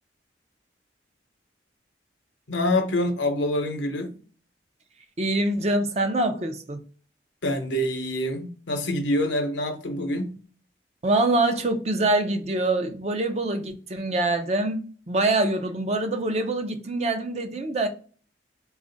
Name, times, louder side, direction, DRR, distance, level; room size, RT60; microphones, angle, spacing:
voice 1, 2.5-4.2 7.4-10.4, left 1 dB, 80° left, 0.8 m, -26 dB
voice 2, 5.2-6.8 11.0-14.8 15.1-17.9, right 2 dB, 35° right, 0.5 m, -24 dB
4.1 x 2.4 x 3.9 m
head